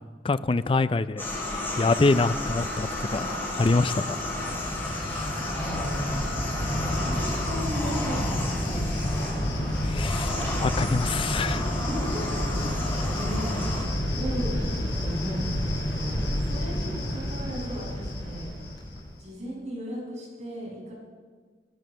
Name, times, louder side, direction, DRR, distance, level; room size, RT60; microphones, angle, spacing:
voice 1, 0.2-1.2 1.8-4.2 9.8-11.7, left 3 dB, 30° left, 14 dB, 0.4 m, -25 dB
sound 1, 1.2-13.8, left 2 dB, 15° left, 5.9 m, -33 dB
Cricket, 3.5-19.2, equal, 70° left, 6.2 m, -30 dB
voice 2, 5.4-6.4 6.8-10.1 11.7-18.5 19.2-20.9, equal, 40° right, -4 dB, 6.7 m, -36 dB
20.0 x 11.0 x 6.4 m, 1.5 s
head